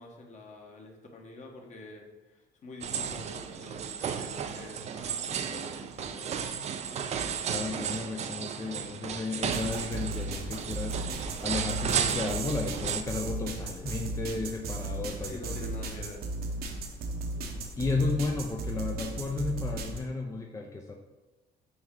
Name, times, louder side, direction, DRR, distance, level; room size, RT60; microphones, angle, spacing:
voice 1, 0.0-6.3 15.2-16.7, left 2 dB, 45° left, 1 dB, 1.3 m, -47 dB
sound 1, 2.8-13.0, right 7 dB, 40° right, 0.5 m, -34 dB
voice 2, 7.5-15.6 17.8-20.9, left 3 dB, 20° left, 1 dB, 0.5 m, -33 dB
sound 2, 9.5-20.0, right 2 dB, 65° right, 0.9 m, -36 dB
6.2 x 4.4 x 3.8 m, 1.2 s
cardioid pair, 110°, 17 cm